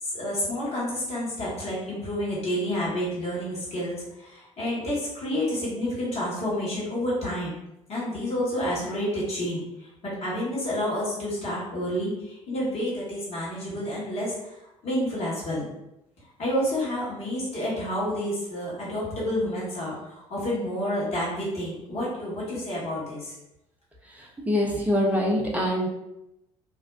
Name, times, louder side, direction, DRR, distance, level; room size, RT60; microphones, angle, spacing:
voice 1, 0.0-7.6 7.9-15.7 16.4-23.3, equal, 40° left, -7 dB, 1.1 m, -29 dB
voice 2, 24.5-25.9, left 1 dB, 10° right, -3 dB, 0.6 m, -24 dB
2.6 x 2.1 x 2.3 m, 0.87 s
figure-of-eight pair, 55°, 17 cm